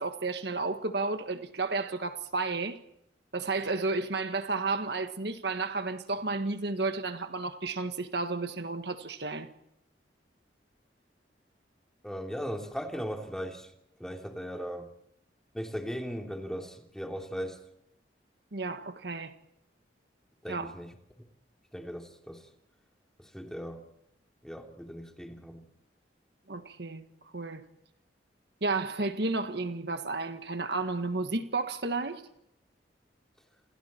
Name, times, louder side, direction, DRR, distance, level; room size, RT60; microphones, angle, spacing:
voice 1, 0.0-2.8 3.3-9.5 18.5-19.3 20.5-20.7 26.5-27.7 28.6-32.3, right 3 dB, 65° right, 1.6 m, -32 dB
voice 2, 12.0-13.7 14.0-14.9 15.5-17.6 20.4-21.3 21.7-22.5 23.2-23.9 24.4-25.7, equal, 5° left, 3.2 m, -38 dB
28.5 x 28.5 x 4.5 m
head